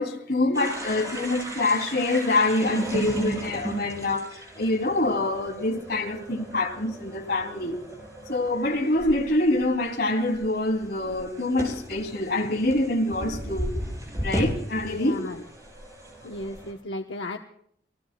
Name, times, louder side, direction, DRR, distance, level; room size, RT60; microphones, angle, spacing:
voice 1, 0.0-7.8 8.3-13.7 14.2-15.2, left 2 dB, 60° left, 2.8 m, -25 dB
sound 1, 0.5-16.7, right 1 dB, 20° right, 6.2 m, -36 dB
voice 2, 14.8-15.5 16.2-17.4, left 1 dB, 80° left, 0.9 m, -35 dB
27.0 x 18.5 x 2.2 m
head